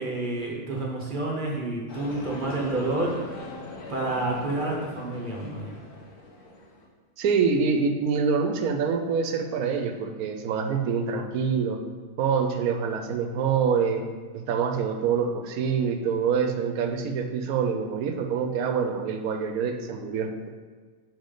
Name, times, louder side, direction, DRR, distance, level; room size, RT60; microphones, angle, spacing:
voice 1, 0.0-3.2 3.9-5.7, right 2 dB, 40° right, -1 dB, 0.9 m, -29 dB
sound 1, 1.9-6.9, left 2 dB, 90° left, 1.5 m, -41 dB
voice 2, 7.2-11.8 12.2-14.1 14.3-20.3, right 6 dB, 80° right, 6 dB, 1.0 m, -26 dB
5.4 x 5.2 x 3.7 m, 1.5 s
omnidirectional pair, 1.6 m